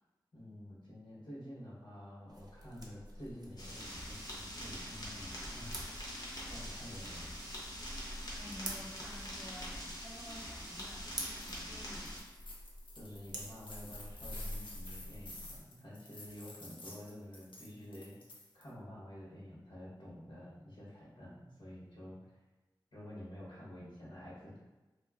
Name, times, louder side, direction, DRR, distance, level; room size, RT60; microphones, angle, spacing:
voice 1, 0.3-5.8 6.5-7.2 12.9-18.2 18.5-22.2 22.9-24.6, left 1 dB, 70° left, -7 dB, 1.0 m, -50 dB
sound 1, 2.3-15.6, right 1 dB, 55° right, 0.5 m, -48 dB
sound 2, 3.6-12.2, equal, 50° left, 0.7 m, -45 dB
voice 2, 8.4-12.2, equal, ahead, -4 dB, 0.5 m, -51 dB
sound 3, 11.3-11.6 12.0-18.7, left 2 dB, 90° left, 0.4 m, -51 dB
2.5 x 2.3 x 2.3 m, 1.1 s
wide cardioid pair, 55°, 8 cm